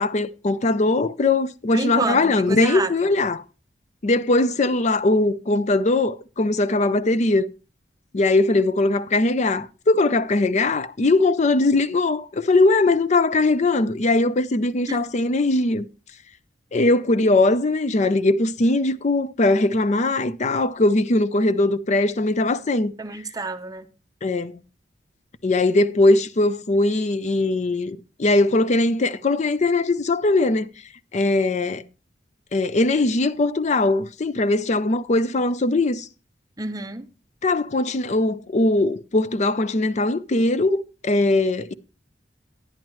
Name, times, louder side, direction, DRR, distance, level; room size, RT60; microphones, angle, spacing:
voice 1, 0.0-3.4 4.0-7.5 8.1-15.9 16.7-22.9 24.2-24.6 25.4-30.7 31.1-31.8 32.5-36.1 37.4-41.7, left 2 dB, 40° left, 0.5 m, -20 dB
voice 2, 1.7-2.9 14.9-15.0 23.0-23.9 36.6-37.1, right 3 dB, 20° right, 0.6 m, -29 dB
10.5 x 10.5 x 3.1 m
head